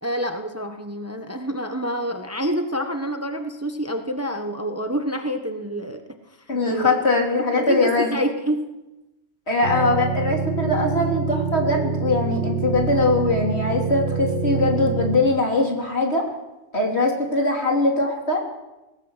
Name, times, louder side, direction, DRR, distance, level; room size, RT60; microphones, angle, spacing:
voice 1, 0.0-6.0 6.5-7.0 7.4-8.6, equal, 10° right, 6 dB, 1.3 m, -27 dB
voice 2, 6.5-8.2 9.5-16.2 16.7-18.4, left 2 dB, 55° left, 1 dB, 3.8 m, -21 dB
sound 1, 9.6-15.2, right 5 dB, 45° right, 3.3 m, -26 dB
20.0 x 17.0 x 8.1 m, 1.0 s
omnidirectional pair, 1.3 m